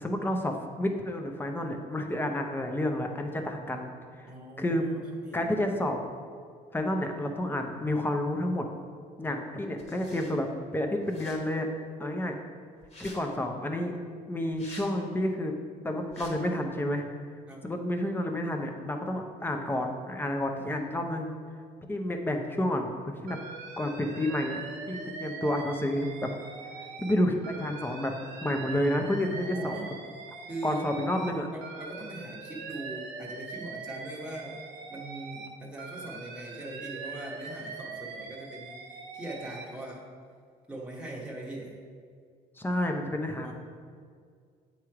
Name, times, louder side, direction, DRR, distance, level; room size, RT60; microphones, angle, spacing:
voice 1, 0.0-4.3 4.6-4.8 5.3-6.0 6.7-8.7 9.2-10.5 10.7-11.7 12.0-12.3 13.0-13.9 14.3-15.5 15.8-17.1 17.6-21.3 21.9-23.4 23.8-24.6 24.9-26.1 27.0-28.1 28.4-29.8 30.6-31.5 42.6-43.5, left 1 dB, 10° left, 4 dB, 0.7 m, -30 dB
voice 2, 4.2-5.4 17.5-17.7 29.4-29.9 30.5-30.9 31.5-34.6 34.9-40.1 40.7-41.8 43.4-43.5, right 2 dB, 5° right, -4 dB, 1.1 m, -41 dB
sound 1, 9.8-10.3 11.0-11.4 12.8-13.2 14.5-14.9 16.1-16.3, left 2 dB, 40° left, 1.6 m, -47 dB
Alarm, 23.3-27.1 27.4-31.3 31.6-35.5 35.8-39.7, right 4 dB, 85° right, 0.8 m, -42 dB
8.1 x 3.1 x 4.8 m, 2.1 s
cardioid pair, 110°, 17 cm